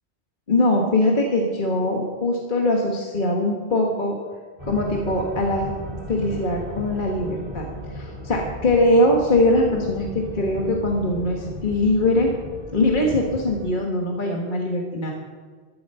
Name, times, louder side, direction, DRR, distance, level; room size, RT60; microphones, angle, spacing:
voice 1, 0.5-4.2 4.7-5.7 6.1-12.3 12.7-15.1, left 1 dB, 50° left, 0 dB, 1.8 m, -22 dB
sound 1, 4.6-13.7, equal, 30° right, 4.5 m, -36 dB
14.5 x 11.5 x 5.6 m, 1.5 s
omnidirectional pair, 1.1 m